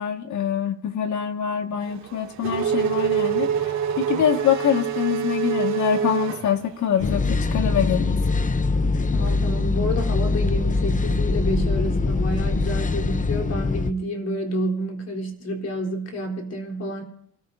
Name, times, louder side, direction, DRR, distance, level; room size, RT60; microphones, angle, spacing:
voice 1, 0.0-8.2, left 9 dB, 70° left, 5 dB, 1.9 m, -24 dB
Race car auto racing / Accelerating revving vroom, 1.9-7.1, right 8 dB, 65° right, 2.5 m, -26 dB
sound 1, 7.0-13.9, left 3 dB, 25° left, 0.8 m, -23 dB
voice 2, 9.1-17.0, equal, 55° left, 1 dB, 3.8 m, -29 dB
28.0 x 14.5 x 2.7 m, 0.69 s
cardioid pair, 90°, 30 cm